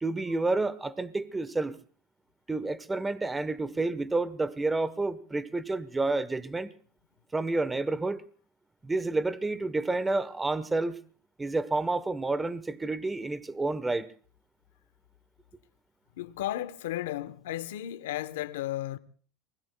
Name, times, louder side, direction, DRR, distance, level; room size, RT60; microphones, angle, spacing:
voice 1, 0.0-1.8 2.5-6.7 7.3-8.2 8.8-11.0 11.4-14.1, right 2 dB, 15° right, 1.1 m, -29 dB
voice 2, 16.2-19.0, left 13 dB, 90° left, 1.0 m, -34 dB
28.0 x 20.5 x 2.3 m
supercardioid pair, 120°, 0 cm